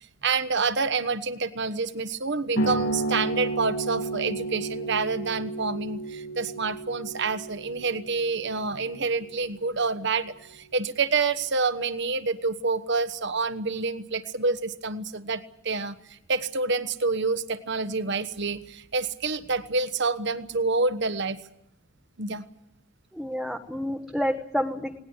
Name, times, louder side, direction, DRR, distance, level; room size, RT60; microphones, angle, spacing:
voice 1, 0.2-21.4 22.2-22.4, right 4 dB, 55° right, 11 dB, 1.2 m, -28 dB
sound 1, 2.6-9.7, right 2 dB, 85° left, 6.9 m, -32 dB
voice 2, 23.1-25.0, equal, ahead, 2 dB, 1.1 m, -29 dB
19.5 x 18.5 x 9.7 m, 0.81 s
head